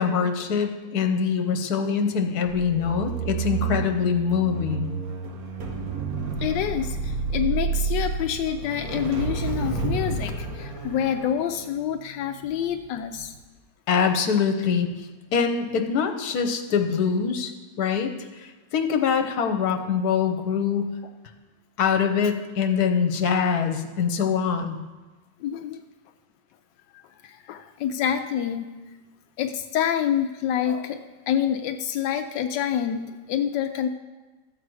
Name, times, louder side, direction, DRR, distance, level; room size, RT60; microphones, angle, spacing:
voice 1, 0.0-4.9 13.9-14.9 15.3-17.5 17.8-18.1 18.4-20.9 21.8-24.8, left 6 dB, 65° left, 6 dB, 1.4 m, -24 dB
sound 1, 2.5-12.8 13.1-13.4, right 5 dB, 60° right, 1.5 m, -30 dB
voice 2, 6.4-13.3 25.4-25.8 26.9-28.7 29.4-33.9, left 9 dB, 85° left, 6 dB, 1.3 m, -27 dB
13.0 x 7.8 x 4.8 m, 1.2 s
omnidirectional pair, 1.9 m